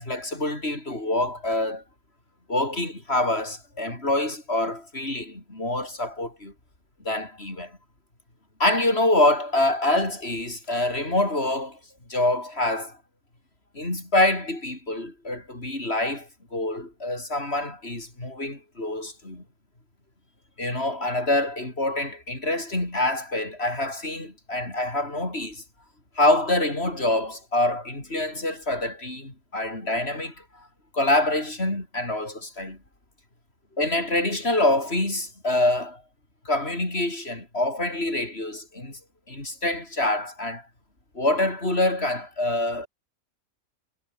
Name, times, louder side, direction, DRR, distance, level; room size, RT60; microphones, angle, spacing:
voice 1, 0.0-1.8 2.5-6.5 7.0-7.8 8.6-11.8 12.1-13.0 13.7-19.4 20.6-25.6 26.2-30.7 30.9-32.8 33.8-36.0 36.4-39.0 39.3-40.6 41.1-42.9, left 1 dB, 50° left, 6.3 m, -26 dB
omnidirectional pair, 1.4 m